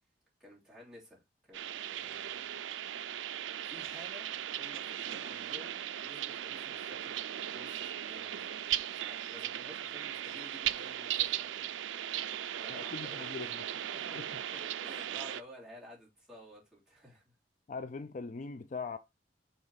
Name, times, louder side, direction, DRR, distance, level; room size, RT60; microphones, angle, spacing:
voice 1, 0.4-2.5 3.0-11.7 12.6-13.5 13.8-14.2 14.5-17.2, equal, 5° right, 3.2 m, -53 dB
sound 1, 1.5-15.4, right 11 dB, 80° right, 0.4 m, -38 dB
voice 2, 12.7-13.7 14.1-14.3 17.7-19.0, left 4 dB, 45° left, 0.4 m, -41 dB
7.2 x 3.9 x 4.0 m
head